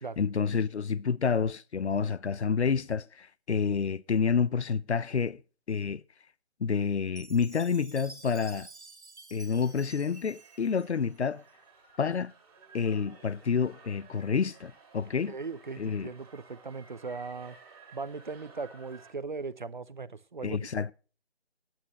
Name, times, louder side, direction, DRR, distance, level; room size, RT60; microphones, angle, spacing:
voice 1, 0.2-5.4 5.7-6.0 6.6-8.7 9.3-11.4 12.0-12.3 12.7-15.3 15.8-16.1 20.4-20.9, left 6 dB, 90° left, 0.6 m, -29 dB
Chime, 7.2-11.5, right 3 dB, 85° right, 1.9 m, -50 dB
sound 1, 9.6-19.1, right 4 dB, 25° right, 2.9 m, -56 dB
voice 2, 15.2-17.6 17.9-20.6, right 4 dB, 45° right, 0.6 m, -38 dB
20.0 x 9.0 x 2.9 m
figure-of-eight pair, 165°, 33 cm